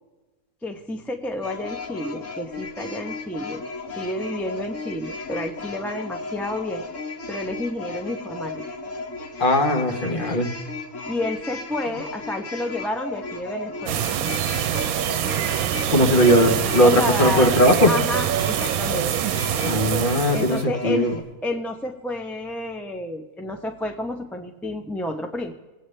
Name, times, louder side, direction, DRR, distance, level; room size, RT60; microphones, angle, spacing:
voice 1, 0.6-3.6 4.0-6.8 7.3-8.6 11.1-14.1 16.8-17.5 17.9-19.1 20.3-21.1 21.4-25.5, left 1 dB, ahead, 4 dB, 0.5 m, -30 dB
sound 1, 1.4-21.2, left 3 dB, 65° left, 1.4 m, -35 dB
voice 2, 9.4-10.5 15.9-17.9 19.6-21.2, equal, 40° left, 3 dB, 1.3 m, -19 dB
sound 2, 13.9-20.6, right 11 dB, 85° right, 1.0 m, -25 dB
20.5 x 8.5 x 3.3 m, 1.2 s
omnidirectional pair, 1.5 m